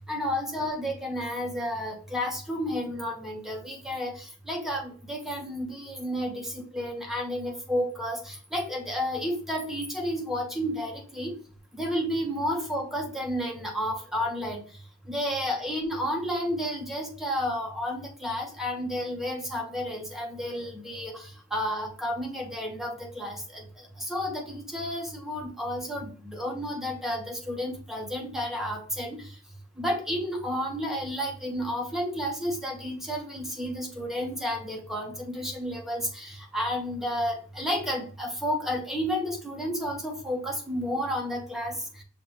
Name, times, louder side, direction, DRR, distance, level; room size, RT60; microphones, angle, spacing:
voice 1, 0.1-11.4 11.7-14.6 15.1-29.3 29.8-42.0, equal, ahead, 0 dB, 0.9 m, -31 dB
6.6 x 2.5 x 2.9 m, 0.42 s
head